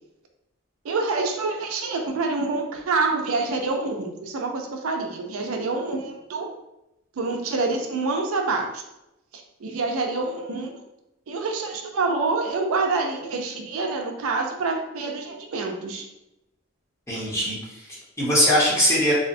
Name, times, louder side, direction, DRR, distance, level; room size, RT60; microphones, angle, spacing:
voice 1, 0.8-6.5 7.2-8.8 9.6-10.7 11.3-16.0, right 3 dB, 85° right, 3 dB, 0.4 m, -26 dB
voice 2, 17.1-19.1, equal, 15° left, -7 dB, 0.8 m, -22 dB
2.7 x 2.1 x 2.5 m, 0.89 s
head